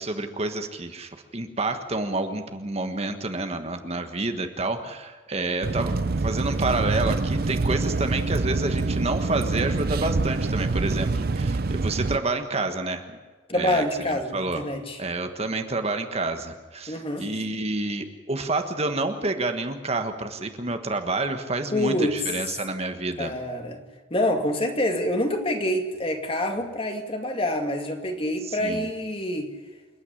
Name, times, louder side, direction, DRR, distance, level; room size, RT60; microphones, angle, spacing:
voice 1, 0.0-13.2 13.5-14.6 15.0-23.3 28.4-28.9, right 2 dB, 35° right, 7 dB, 1.4 m, -29 dB
sound 1, 5.6-12.2, right 3 dB, 55° right, 0.6 m, -25 dB
voice 2, 13.5-15.0 16.9-17.3 21.7-22.2 23.2-23.8 24.1-29.5, left 1 dB, 30° left, 5 dB, 2.3 m, -26 dB
28.5 x 9.7 x 10.0 m, 1.4 s
head